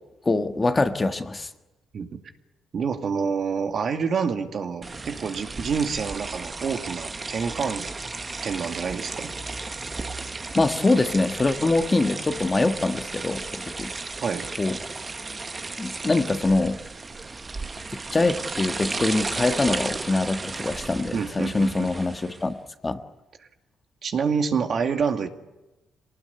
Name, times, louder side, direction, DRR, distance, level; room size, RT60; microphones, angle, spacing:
voice 1, 0.2-1.5 10.5-13.9 14.6-14.8 15.8-16.8 18.1-22.5 22.8-23.0, left 2 dB, 25° left, 7 dB, 1.5 m, -24 dB
voice 2, 2.7-7.9 8.4-9.4 14.2-14.5 21.1-21.9 24.0-25.3, right 6 dB, 55° right, 5 dB, 2.3 m, -27 dB
sound 1, 4.8-22.5, right 3 dB, 25° right, 1.4 m, -34 dB
24.5 x 18.5 x 9.7 m, 1.0 s
cardioid pair, 90°, 0 cm